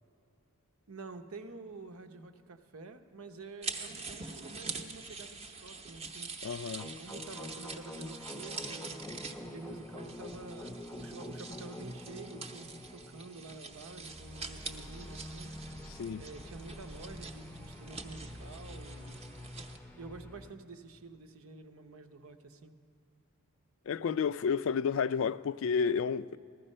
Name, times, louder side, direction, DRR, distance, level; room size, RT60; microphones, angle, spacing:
voice 1, 0.9-6.3 6.8-15.6 16.2-19.2 19.9-22.7, right 3 dB, 80° right, 0.8 m, -49 dB
sound 1, 3.6-19.8, right 4 dB, 30° right, 0.7 m, -45 dB
voice 2, 6.4-6.9 16.0-16.2 23.9-26.4, left 6 dB, 65° left, 0.3 m, -31 dB
sound 2, 6.8-20.5, left 1 dB, 10° left, 0.5 m, -46 dB
15.0 x 13.0 x 5.5 m
head